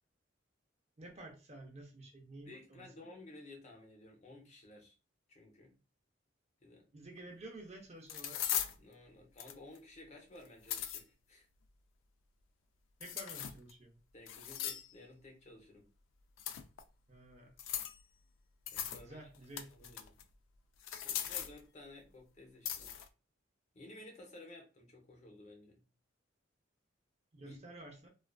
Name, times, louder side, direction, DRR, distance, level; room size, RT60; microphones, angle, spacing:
voice 1, 1.0-3.1 6.9-8.4 13.0-14.0 17.1-17.5 19.0-20.0 27.3-28.1, right 1 dB, 35° right, 1 dB, 0.5 m, -51 dB
voice 2, 2.4-4.9 5.3-5.8 6.6-6.9 8.7-11.5 14.1-15.9 18.7-20.2 21.0-23.0 23.7-25.8 27.4-27.6, left 2 dB, 35° left, 1 dB, 0.6 m, -55 dB
sound 1, 7.2-7.3 8.1-8.8 9.4-9.8 10.4-11.0 13.0-13.7 14.3-14.9 16.4-16.8 17.6-18.0 18.7-19.0 19.3-20.2 20.8-21.6 22.6-23.1, left 10 dB, 80° left, 0.3 m, -39 dB
2.3 x 2.3 x 2.3 m, 0.32 s
head